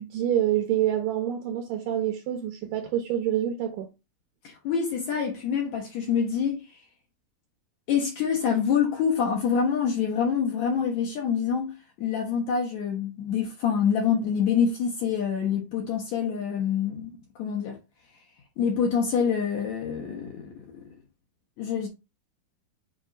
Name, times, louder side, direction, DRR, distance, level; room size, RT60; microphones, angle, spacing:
voice 1, 0.0-3.9, right 11 dB, 70° right, 2.1 m, -27 dB
voice 2, 4.4-6.8 7.9-17.1 17.4-17.8 18.6-20.9 21.6-21.9, left 7 dB, 65° left, 1.9 m, -26 dB
7.6 x 2.6 x 5.1 m
omnidirectional pair, 4.6 m